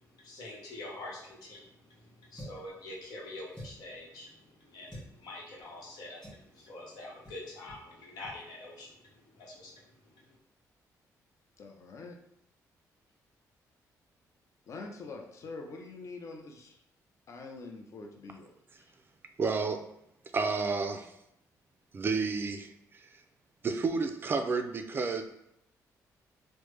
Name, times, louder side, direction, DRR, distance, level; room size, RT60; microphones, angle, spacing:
voice 1, 0.0-10.4, left 2 dB, 85° left, -3 dB, 1.0 m, -46 dB
sound 1, 2.3-2.7 3.5-3.9 4.9-5.1 6.2-6.5 7.2-7.4 7.7-7.8 8.2-8.4, equal, 10° left, 1.4 m, -47 dB
voice 2, 11.6-12.2 14.7-16.8 17.3-18.5 18.8-18.9, left 3 dB, 50° left, 2 dB, 0.6 m, -45 dB
voice 3, 19.4-19.8 20.3-21.1 21.9-22.7 23.6-25.2, right 4 dB, 35° right, 6 dB, 0.3 m, -30 dB
3.3 x 2.1 x 3.2 m, 0.77 s
cardioid pair, 110°, 7 cm